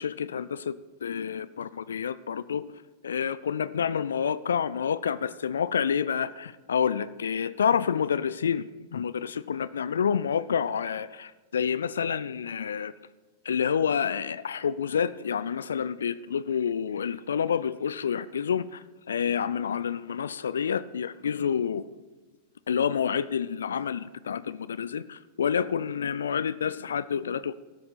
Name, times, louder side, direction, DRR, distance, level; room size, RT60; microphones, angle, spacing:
voice 1, 0.0-2.7 3.0-8.6 8.9-12.9 13.4-21.8 22.7-27.5, left 7 dB, 70° left, 17 dB, 0.4 m, -28 dB
17.0 x 13.0 x 4.1 m, 1.3 s
figure-of-eight pair, 90°, 0 cm